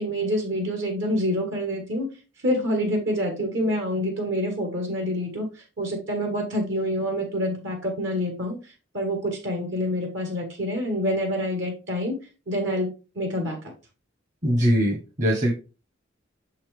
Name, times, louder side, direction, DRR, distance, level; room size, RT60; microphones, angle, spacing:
voice 1, 0.0-2.1 2.4-12.1 12.5-12.9 13.1-13.7, equal, 65° right, 3 dB, 1.5 m, -27 dB
voice 2, 14.4-15.5, equal, 40° right, 0 dB, 1.2 m, -21 dB
6.3 x 5.6 x 3.3 m, 0.32 s
head